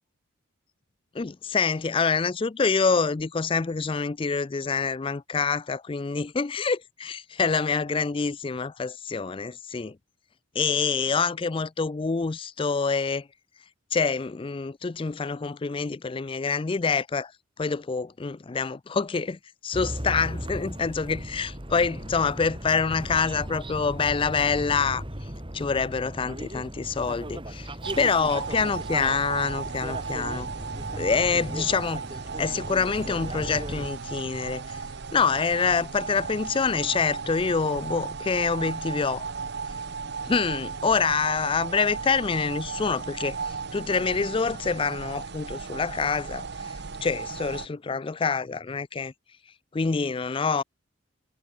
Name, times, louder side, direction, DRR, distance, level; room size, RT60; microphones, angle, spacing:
voice 1, 1.1-10.0 10.6-13.3 13.9-17.3 17.6-25.0 25.5-30.5 31.0-32.0 32.4-34.8 35.1-39.3 40.2-46.5 47.0-49.1 49.7-50.6, left 5 dB, 25° left, 0.4 m, -26 dB
sound 1, 19.7-33.9, right 1 dB, 25° right, 5.2 m, -37 dB
sound 2, 27.8-47.7, right 5 dB, 55° right, 0.8 m, -35 dB
head